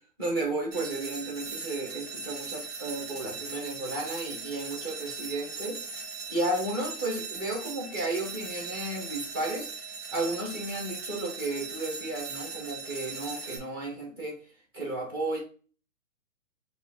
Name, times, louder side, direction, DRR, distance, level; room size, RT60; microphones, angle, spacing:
voice 1, 0.2-5.8 6.3-9.8 10.1-14.4 14.7-15.4, right 2 dB, 15° right, -3 dB, 0.6 m, -33 dB
sound 1, 0.7-13.6, right 4 dB, 35° right, 1.0 m, -39 dB
4.4 x 2.4 x 3.4 m, 0.39 s
hypercardioid pair, 170°, 41 cm